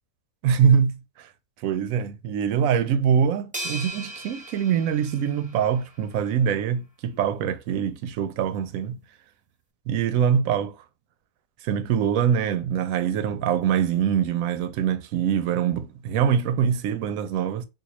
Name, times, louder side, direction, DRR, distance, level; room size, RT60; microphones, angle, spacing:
voice 1, 0.4-1.3 1.6-9.0 9.9-10.8 11.6-17.7, right 8 dB, 85° right, 1.0 m, -24 dB
sound 1, 3.5-6.0, right 1 dB, 5° right, 0.9 m, -37 dB
3.7 x 2.6 x 2.9 m
omnidirectional pair, 1.4 m